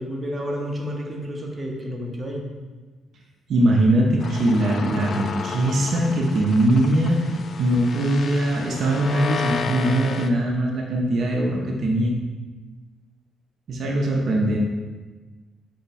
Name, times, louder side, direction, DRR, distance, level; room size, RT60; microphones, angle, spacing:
voice 1, 0.0-2.5, equal, 20° right, 0 dB, 0.8 m, -30 dB
voice 2, 3.5-7.2 7.6-12.1 13.7-14.6, right 1 dB, 60° right, -1 dB, 0.6 m, -21 dB
sound 1, 4.2-10.3, left 5 dB, 55° left, 0.3 m, -32 dB
5.4 x 2.2 x 4.1 m, 1.3 s
cardioid pair, 90°, 0 cm